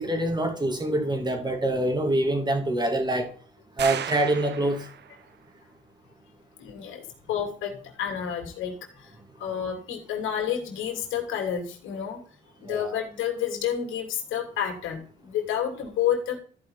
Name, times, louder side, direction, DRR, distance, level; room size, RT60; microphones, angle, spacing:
voice 1, 0.0-3.3 3.8-4.9 12.7-12.9, right 1 dB, 20° right, 2.5 m, -25 dB
sound 1, 3.8-5.3, right 9 dB, 60° right, 0.8 m, -35 dB
voice 2, 6.6-9.1 9.4-12.2 12.6-16.4, left 9 dB, 85° left, 2.7 m, -30 dB
13.5 x 4.9 x 4.1 m
cardioid pair, 90°, 20 cm